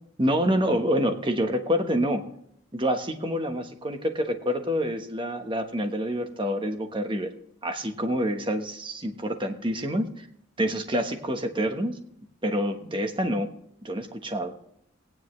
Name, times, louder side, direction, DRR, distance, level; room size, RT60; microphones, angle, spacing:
voice 1, 0.2-2.2 2.7-7.3 7.6-10.3 10.6-12.0 12.4-13.5 13.8-14.5, equal, 25° right, 6 dB, 1.2 m, -27 dB
18.0 x 9.7 x 3.2 m, 0.71 s
head